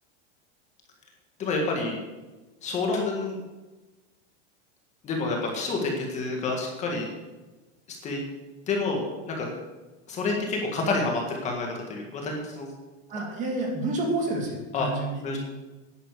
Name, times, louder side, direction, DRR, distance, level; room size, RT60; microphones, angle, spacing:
voice 1, 1.4-2.0 2.6-3.4 5.0-7.1 7.9-8.2 8.7-9.5 10.1-12.7 14.7-14.9 15.2-15.4, left 3 dB, 20° left, 0 dB, 1.9 m, -28 dB
voice 2, 13.1-15.2, right 2 dB, 20° right, 1 dB, 2.2 m, -29 dB
10.5 x 9.9 x 6.8 m, 1.2 s
supercardioid pair, 175°, 33 cm